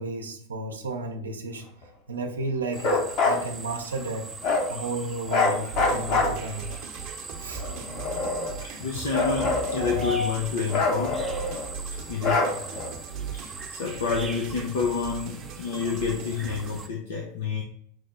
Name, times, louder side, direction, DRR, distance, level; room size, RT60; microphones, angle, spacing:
voice 1, 0.0-1.6 2.1-3.0 3.2-4.3 4.7-6.7 7.4-7.6 9.8-10.1, right 2 dB, 90° right, 3 dB, 0.7 m, -33 dB
sound 1, 2.7-16.9, right 4 dB, 15° right, 0.5 m, -42 dB
Bark, 2.8-3.4 4.4-4.7 5.3-6.7 7.5-8.6 9.1-10.2 10.7-11.7 12.2-12.9, left 3 dB, 50° left, 1.1 m, -26 dB
sound 2, 5.7-16.8, right 6 dB, 50° right, 0.8 m, -39 dB
voice 2, 8.6-11.3 12.1-12.8 13.3-17.6, left 5 dB, 75° left, 0 dB, 0.7 m, -29 dB
6.3 x 2.1 x 3.7 m, 0.68 s
hypercardioid pair, 95°, 0 cm